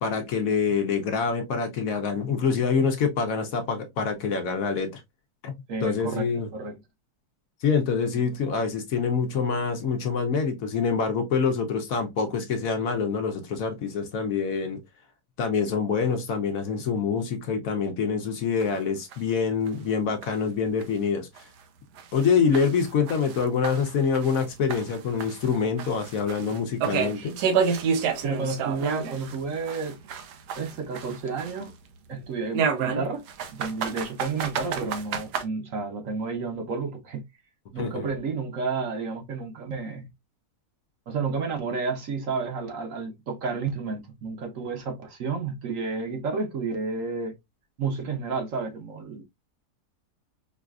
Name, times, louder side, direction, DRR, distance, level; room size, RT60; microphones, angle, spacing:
voice 1, 0.0-5.0 5.4-5.5 5.8-6.5 7.6-14.8 15.4-21.5 22.1-27.4 37.8-38.1, left 5 dB, 65° left, 1.0 m, -26 dB
voice 2, 5.7-6.2 6.5-6.8 28.2-30.0 30.6-31.7 32.1-33.2 33.5-37.2 37.7-40.1 41.1-47.3 47.8-49.2, right 4 dB, 60° right, 1.1 m, -31 dB
sound 1, 18.6-18.7 19.1-19.2 19.7-19.8 20.2-20.3 20.8-20.9 21.4-21.5 22.0-24.4 24.7-29.3 29.7-31.7 32.5-35.4, right 6 dB, 90° right, 1.2 m, -29 dB
4.8 x 2.4 x 2.3 m
omnidirectional pair, 1.7 m